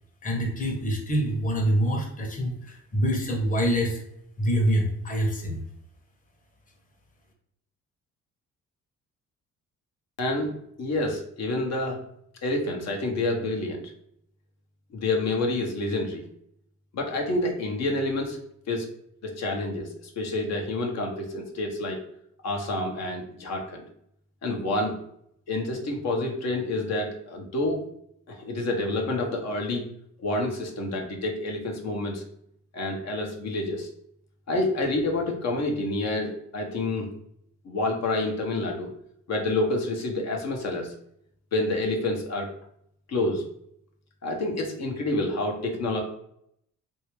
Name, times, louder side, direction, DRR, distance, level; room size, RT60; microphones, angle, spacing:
voice 1, 0.2-4.0 4.4-5.6, equal, 25° left, 1 dB, 0.9 m, -25 dB
voice 2, 10.2-12.0 12.4-13.8 14.9-16.2 16.9-18.4 18.7-18.9 19.2-22.0 22.4-23.8 24.4-25.0 25.5-27.8 28.3-29.9 30.2-32.2 32.7-33.9 34.5-37.1 37.6-38.9 39.3-40.9 41.5-42.5 43.1-43.5 44.2-46.0, left 2 dB, 60° left, 2 dB, 0.9 m, -28 dB
3.3 x 2.7 x 3.1 m, 0.72 s
cardioid pair, 90°, 30 cm